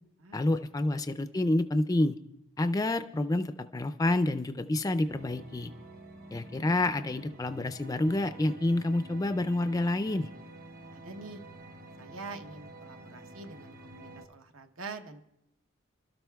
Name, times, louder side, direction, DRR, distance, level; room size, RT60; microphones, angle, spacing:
voice 1, 0.3-2.1 2.6-5.7 6.3-10.3, left 2 dB, 15° left, 10 dB, 0.4 m, -28 dB
sound 1, 5.1-14.3, right 1 dB, 45° right, 1.2 m, -49 dB
voice 2, 10.9-11.4 12.0-15.2, right 3 dB, 70° right, 6 dB, 0.9 m, -45 dB
29.5 x 12.5 x 2.3 m, 0.85 s
head